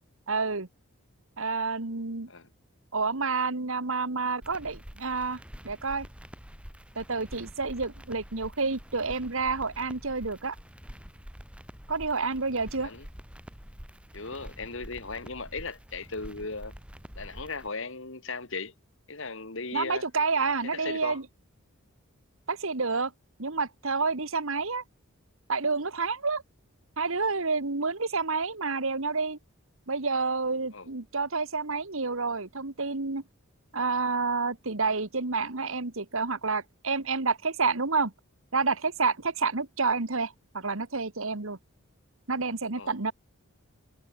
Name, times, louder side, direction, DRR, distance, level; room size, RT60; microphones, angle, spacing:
voice 1, 0.3-0.7 1.4-2.3 2.9-5.4 5.6-6.1 6.9-10.5 11.9-12.9 19.7-21.2 22.5-23.1 23.4-24.8 25.5-26.4 27.0-29.4 29.9-33.2 33.7-38.1 38.5-41.6 42.3-43.1, right 4 dB, 65° right, 1.6 m, -29 dB
sound 1, 4.4-17.7, equal, 5° right, 4.3 m, -46 dB
voice 2, 14.1-16.7 17.2-18.7 19.1-20.1 20.7-21.2 30.7-30.9 42.8-43.1, left 4 dB, 60° left, 2.1 m, -37 dB
head